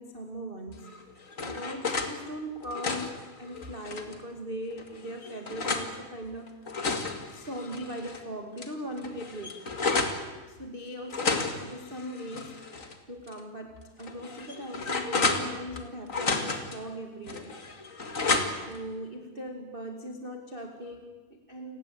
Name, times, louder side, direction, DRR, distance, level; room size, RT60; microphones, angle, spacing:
voice 1, 0.0-6.6 7.3-9.7 10.5-17.9 18.2-18.4 18.7-21.8, equal, 20° right, 3 dB, 1.9 m, -40 dB
sound 1, 0.8-2.1 2.6-4.2 4.8-5.9 6.5-8.2 8.6-8.7 9.0-10.2 11.1-12.9 13.3-13.4 14.0-15.8 16.1-16.8 17.3-18.8, left 3 dB, 30° left, 1.7 m, -31 dB
30.0 x 18.0 x 8.6 m, 1.2 s
omnidirectional pair, 4.0 m